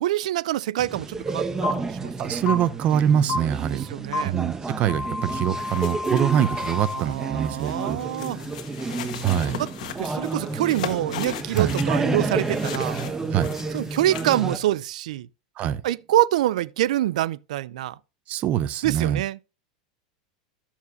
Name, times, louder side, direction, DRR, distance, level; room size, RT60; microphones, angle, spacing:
voice 1, 0.0-2.1 3.7-4.3 6.9-8.4 9.6-9.7 10.0-13.0 13.7-15.3 15.8-18.0 18.8-19.4, right 14 dB, 85° right, 0.4 m, -25 dB
sound 1, 0.8-14.6, right 3 dB, 15° right, 0.8 m, -30 dB
sound 2, 1.6-1.7 2.5-2.6 3.3-3.4 4.1-4.2 4.9-7.0, left 3 dB, 45° left, 3.1 m, -29 dB
voice 2, 2.2-3.8 4.2-8.0 9.2-9.6 11.6-11.7 13.3-13.5 15.6-15.8 18.3-19.2, right 10 dB, 40° right, 0.7 m, -24 dB
sound 3, 5.3-14.4, left 10 dB, 85° left, 1.3 m, -39 dB
13.5 x 7.2 x 2.6 m
supercardioid pair, 135°, 4 cm